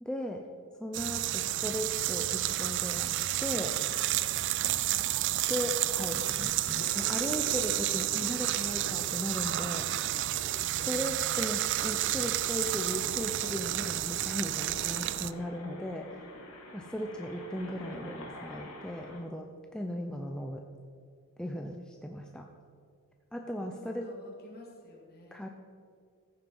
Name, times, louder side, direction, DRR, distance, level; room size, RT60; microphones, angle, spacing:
voice 1, 0.0-0.4 0.8-3.8 5.5-9.9 10.8-16.3 16.7-19.5 19.7-20.6 21.4-22.5 23.3-24.1 25.3-25.5, equal, 5° left, 2 dB, 0.6 m, -37 dB
sound 1, 0.9-15.3, right 14 dB, 55° right, 0.3 m, -31 dB
voice 2, 4.8-5.3 23.6-25.5, left 1 dB, 45° left, -2 dB, 2.5 m, -53 dB
sound 2, 5.9-19.2, left 1 dB, 85° left, 2.6 m, -47 dB
14.0 x 7.6 x 5.5 m, 2.2 s
head